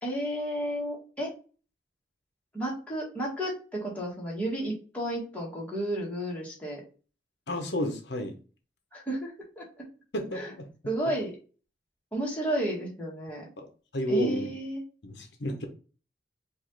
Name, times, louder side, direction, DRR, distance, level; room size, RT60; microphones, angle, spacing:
voice 1, 0.0-1.3 2.5-6.8 8.9-9.9 10.3-10.5 10.9-11.4 12.1-13.5 14.1-14.8, right 1 dB, 10° left, -4 dB, 1.7 m, -32 dB
voice 2, 7.5-8.4 10.1-10.7 13.6-13.7 13.9-14.5 15.0-15.7, equal, 80° left, 5 dB, 0.9 m, -31 dB
4.9 x 2.6 x 4.0 m, 0.37 s
head